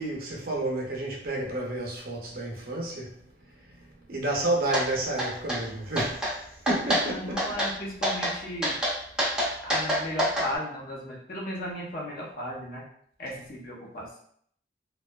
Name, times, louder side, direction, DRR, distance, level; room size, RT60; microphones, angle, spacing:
voice 1, 0.0-3.1 4.1-6.3 6.7-7.4, right 2 dB, 55° right, -2 dB, 0.6 m, -30 dB
sound 1, 4.7-4.9 5.2-5.6 6.0-6.3 6.7-7.0 7.4-7.7 8.0-8.3 8.6-10.5, equal, 5° right, 0.5 m, -26 dB
voice 2, 6.9-8.8 9.6-12.8 13.2-14.2, left 1 dB, 50° left, -3 dB, 0.6 m, -35 dB
2.6 x 2.2 x 2.2 m, 0.64 s
head